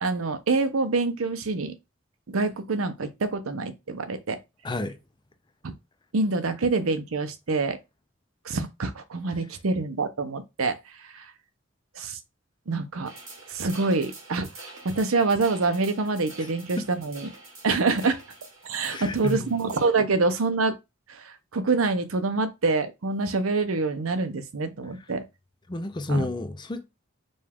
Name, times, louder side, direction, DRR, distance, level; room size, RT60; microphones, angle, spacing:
voice 1, 0.0-1.8 2.3-4.4 5.6-5.7 6.1-7.8 8.4-10.8 11.1-11.2 12.0-12.2 12.7-13.1 13.5-14.5 14.8-17.3 17.6-18.2 18.6-20.8 21.1-21.2 21.5-25.2 26.1-26.3, right 3 dB, 90° right, 0.7 m, -26 dB
voice 2, 4.6-5.0 16.8-16.9 18.9-19.5 25.7-26.8, left 2 dB, 20° left, 0.5 m, -30 dB
sound 1, 13.1-19.9, right 3 dB, 70° right, 2.4 m, -46 dB
5.2 x 2.4 x 3.5 m
head